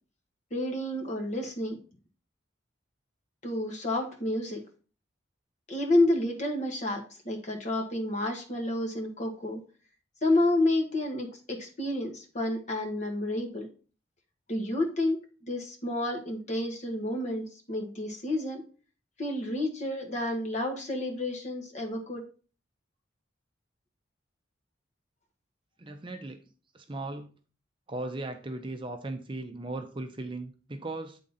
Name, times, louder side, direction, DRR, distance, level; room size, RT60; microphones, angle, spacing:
voice 1, 0.5-1.8 3.4-4.6 5.7-9.6 10.2-13.7 14.5-15.2 15.4-18.6 19.2-22.2, left 1 dB, 40° left, 1 dB, 1.4 m, -30 dB
voice 2, 25.8-26.4 26.7-27.3 27.9-31.2, right 2 dB, 25° right, 6 dB, 0.5 m, -37 dB
8.6 x 3.7 x 4.0 m, 0.38 s
head